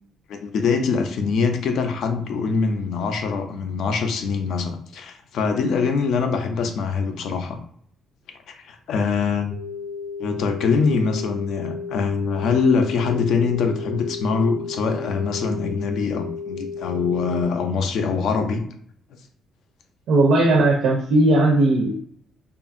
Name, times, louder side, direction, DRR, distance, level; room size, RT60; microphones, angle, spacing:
voice 1, 0.3-7.6 8.5-9.5 10.2-18.6, left 5 dB, 65° left, 6 dB, 0.4 m, -23 dB
sound 1, 9.5-17.4, left 5 dB, 5° right, 0.5 m, -33 dB
voice 2, 20.1-21.9, right 2 dB, 70° right, -1 dB, 0.4 m, -17 dB
2.7 x 2.4 x 2.4 m, 0.62 s
cardioid pair, 155°, 0 cm